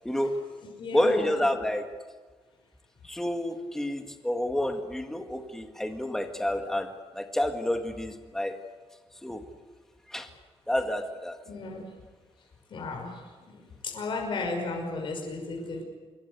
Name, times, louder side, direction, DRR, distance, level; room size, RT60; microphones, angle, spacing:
voice 1, 0.0-0.4 0.9-1.9 3.0-8.6 9.2-9.4 10.1-10.3 10.7-11.4, left 1 dB, 5° left, 5 dB, 1.9 m, -29 dB
voice 2, 0.8-1.4 11.5-11.8 12.7-13.1 13.9-15.8, left 3 dB, 50° left, 2 dB, 5.7 m, -34 dB
26.0 x 22.5 x 8.1 m, 1.3 s
wide cardioid pair, 160°, 11 cm